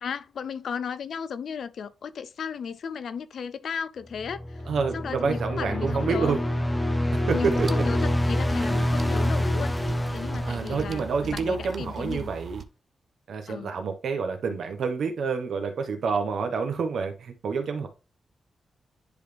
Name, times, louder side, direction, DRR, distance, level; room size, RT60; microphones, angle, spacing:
voice 1, 0.0-4.6 4.9-6.3 7.3-9.8 10.1-12.3 13.5-13.7, left 6 dB, 70° left, 0.4 m, -35 dB
sound 1, 4.2-11.5, left 1 dB, 10° left, 0.4 m, -27 dB
voice 2, 4.7-6.4 7.1-7.8 8.6-8.9 10.4-12.6 13.3-17.9, right 5 dB, 70° right, 1.1 m, -28 dB
sound 2, 7.3-12.6, right 5 dB, 50° right, 0.5 m, -39 dB
10.0 x 3.5 x 3.3 m
cardioid pair, 105°, 0 cm